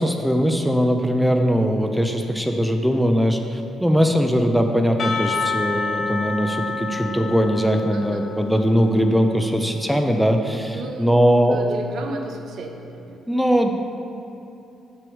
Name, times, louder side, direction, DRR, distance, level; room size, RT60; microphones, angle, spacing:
voice 1, 0.0-11.6 13.3-13.7, equal, ahead, 4 dB, 0.6 m, -20 dB
Percussion / Church bell, 5.0-9.5, left 4 dB, 45° left, 0.9 m, -29 dB
voice 2, 7.9-8.2 10.7-11.2 11.4-13.2, right 2 dB, 70° right, 3 dB, 0.9 m, -33 dB
6.8 x 6.1 x 4.7 m, 2.9 s
cardioid pair, 90°, 0 cm